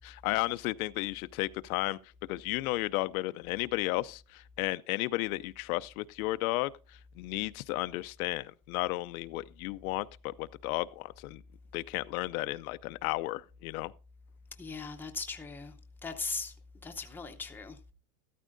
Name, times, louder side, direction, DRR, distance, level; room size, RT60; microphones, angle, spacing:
voice 1, 0.0-2.0 2.3-11.4 11.7-13.9, left 19 dB, 70° left, 0.6 m, -33 dB
voice 2, 14.6-15.7 16.0-16.5 16.8-17.7, left 4 dB, 5° left, 0.7 m, -38 dB
13.5 x 13.0 x 2.5 m
supercardioid pair, 145°, 44 cm